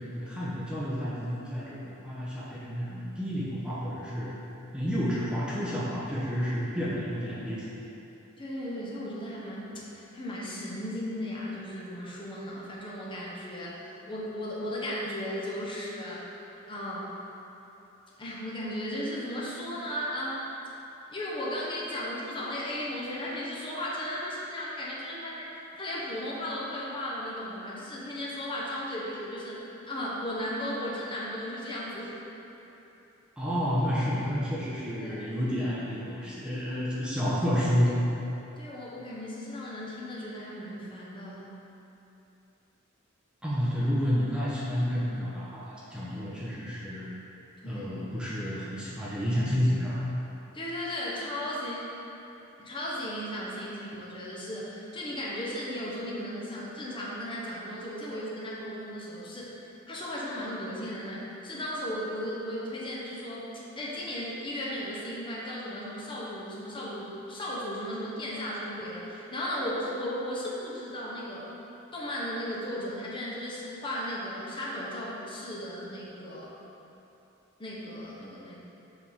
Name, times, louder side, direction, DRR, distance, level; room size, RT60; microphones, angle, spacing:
voice 1, 0.0-4.3 4.7-7.7 33.4-37.9 43.4-47.1 47.6-50.0, equal, 5° right, -8 dB, 0.8 m, -30 dB
voice 2, 8.4-16.2 16.7-17.1 18.2-20.5 21.1-25.4 25.8-29.6 29.9-32.1 35.0-35.4 38.6-41.5 47.6-47.9 50.5-51.9 52.6-59.5 59.9-63.5 63.8-71.5 71.9-76.5 77.6-78.6, left 1 dB, 25° left, -6 dB, 0.9 m, -36 dB
6.8 x 3.6 x 4.3 m, 3.0 s
head